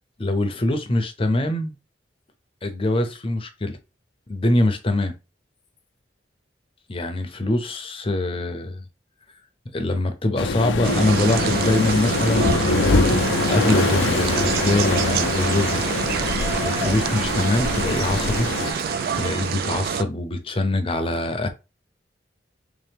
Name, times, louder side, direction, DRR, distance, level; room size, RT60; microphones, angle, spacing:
voice 1, 0.2-1.7 2.6-3.8 4.3-5.2 6.9-8.8 9.7-13.0 13.5-15.9 16.6-18.5 19.1-21.5, left 2 dB, 30° left, 0.6 m, -23 dB
Waves surf, 10.4-18.7, left 3 dB, 90° left, 0.5 m, -24 dB
sound 1, 10.8-20.0, right 7 dB, 55° right, 0.3 m, -26 dB
Applause, 12.9-19.9, equal, 15° right, 1.0 m, -33 dB
3.4 x 2.9 x 3.5 m
head